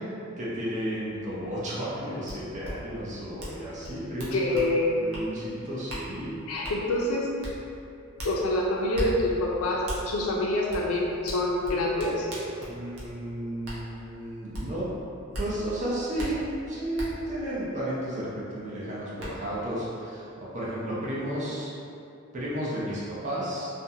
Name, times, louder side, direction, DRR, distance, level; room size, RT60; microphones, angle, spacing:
voice 1, 0.4-4.6 4.9-6.4 12.7-14.8 15.4-21.7 22.3-23.7, right 1 dB, 35° right, -8 dB, 0.6 m, -33 dB
sound 1, 2.3-2.4 2.6-2.7 3.4-3.6 3.8-4.7 5.1-5.3 5.9-6.0 6.6-6.8 7.4-7.5 8.2-8.3 8.9-9.1 9.9-10.0 10.7-10.8 11.3-13.1 13.6-13.8 14.5-14.6 15.3-15.5 16.2-16.3 17.0-17.1 18.6-18.7 19.2-19.3, equal, 85° right, 0.7 m, -35 dB
voice 2, 4.3-5.0 6.5-7.3 8.2-12.3, left 1 dB, 75° left, -3 dB, 0.5 m, -26 dB
2.5 x 2.2 x 2.7 m, 2.6 s
head